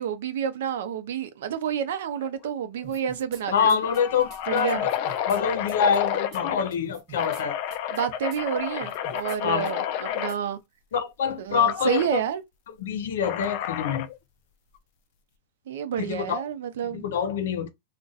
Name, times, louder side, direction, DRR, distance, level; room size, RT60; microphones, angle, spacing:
voice 1, 0.0-3.8 4.5-4.8 7.9-10.6 11.4-12.4 15.7-17.0, right 8 dB, 70° right, 0.6 m, -29 dB
sound 1, 2.2-2.5 2.8-2.9 3.4-6.7 7.1-10.3 11.7-12.1 13.2-14.2, left 10 dB, 40° left, 0.3 m, -30 dB
sound 2, 2.8-3.4 3.7-5.4 5.7-6.0 6.3-6.4 6.7-7.4 7.7-8.0 8.3-8.4 8.8-9.4 9.7-9.8 10.3-10.4, right 4 dB, 30° right, 0.7 m, -46 dB
voice 2, 3.5-4.9 5.3-7.6 9.4-9.7 10.9-12.2 12.8-14.1 16.0-16.4 16.9-17.7, left 7 dB, 85° left, 0.6 m, -25 dB
2.5 x 2.2 x 3.9 m
supercardioid pair, 170°, 0 cm